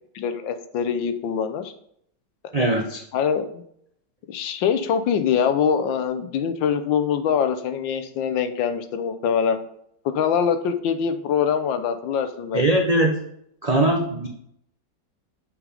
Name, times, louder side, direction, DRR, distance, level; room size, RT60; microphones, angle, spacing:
voice 1, 0.1-1.7 3.1-3.6 4.3-9.6 10.0-12.6, left 7 dB, 85° left, 10 dB, 1.5 m, -23 dB
voice 2, 2.5-3.0 12.5-13.2 13.6-14.3, right 1 dB, 85° right, 1 dB, 0.3 m, -21 dB
7.2 x 4.8 x 5.0 m, 0.71 s
omnidirectional pair, 2.0 m